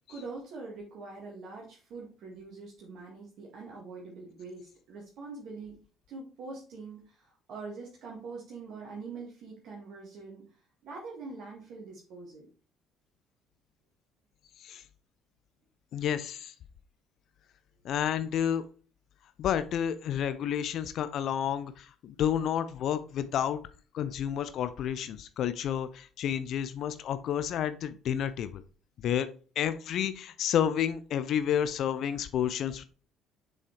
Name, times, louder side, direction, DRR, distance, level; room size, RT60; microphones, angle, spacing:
voice 1, 0.1-5.8 6.1-10.4 10.8-12.5, right 4 dB, 50° right, -3 dB, 1.8 m, -44 dB
voice 2, 15.9-16.5 17.8-18.6 19.4-23.6 23.9-28.6 29.0-29.3 29.6-32.8, left 9 dB, 50° left, 12 dB, 0.6 m, -30 dB
6.8 x 5.4 x 3.1 m, 0.37 s
figure-of-eight pair, 50°, 0 cm